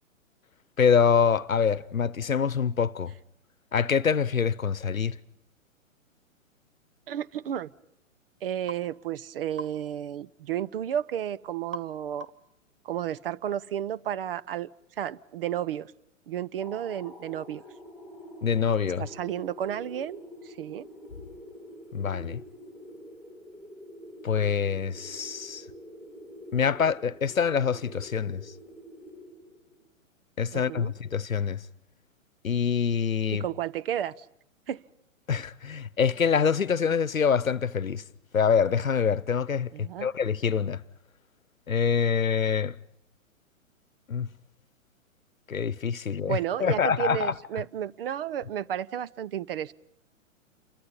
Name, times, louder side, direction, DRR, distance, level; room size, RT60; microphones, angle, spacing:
voice 1, 0.8-3.1 3.7-5.2 18.4-19.0 21.9-22.4 24.2-25.6 26.5-28.5 30.4-31.6 32.4-33.4 35.3-38.0 38.3-40.8 41.7-42.8 44.1-44.3 45.5-47.3, left 6 dB, 80° left, 0.9 m, -25 dB
voice 2, 7.1-7.7 8.4-12.3 12.8-14.7 15.0-15.9 16.3-17.6 19.0-20.9 30.5-30.9 33.3-34.3 34.7-34.8 39.7-40.1 46.2-49.7, right 10 dB, 45° right, 0.8 m, -32 dB
sound 1, 8.7-8.9 9.6-9.8 11.7-11.9 12.2-12.5, right 2 dB, 80° right, 1.6 m, -39 dB
sound 2, 16.6-29.8, equal, 5° right, 4.0 m, -47 dB
29.0 x 24.0 x 5.4 m
figure-of-eight pair, 120°, 40 cm